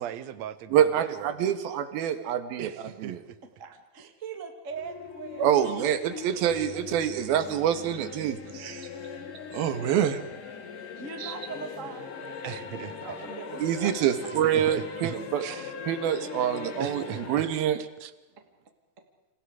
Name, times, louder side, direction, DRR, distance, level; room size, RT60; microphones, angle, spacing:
voice 1, 0.0-1.5 2.6-3.4 12.4-13.0 14.4-15.1 15.4-15.7 16.8-17.5 17.8-18.1, right 11 dB, 65° right, 13 dB, 1.9 m, -38 dB
voice 2, 0.7-2.7 3.0-3.2 5.4-8.9 9.5-10.2 11.2-11.3 13.6-15.4 15.9-17.8, right 10 dB, 80° right, 10 dB, 3.4 m, -26 dB
voice 3, 3.6-5.5 5.8-6.5 8.0-8.1 10.7-12.7 13.0-13.9, right 5 dB, 25° right, 5 dB, 2.0 m, -41 dB
sound 1, 4.7-10.9, left 4 dB, 80° left, 5.0 m, -49 dB
sound 2, 5.0-17.4, left 7 dB, 65° left, 3.4 m, -41 dB
Wind instrument woodwind instrument, 9.0-12.7, left 6 dB, 45° left, 3.5 m, -50 dB
29.0 x 28.0 x 4.9 m, 1.0 s
omnidirectional pair, 4.2 m